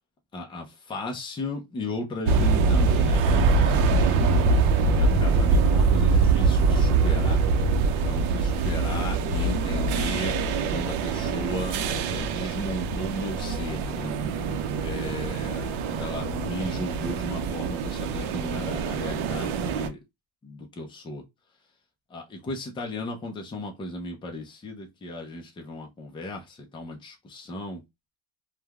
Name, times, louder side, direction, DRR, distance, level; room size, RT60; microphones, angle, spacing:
voice 1, 0.3-7.4 8.0-10.4 10.7-14.1 14.8-20.0 20.4-21.2 22.1-27.8, left 1 dB, 10° left, 0.3 m, -35 dB
sound 1, 2.3-19.9, right 4 dB, 80° right, 0.6 m, -24 dB
3.1 x 2.2 x 2.3 m
cardioid pair, 160°, 49 cm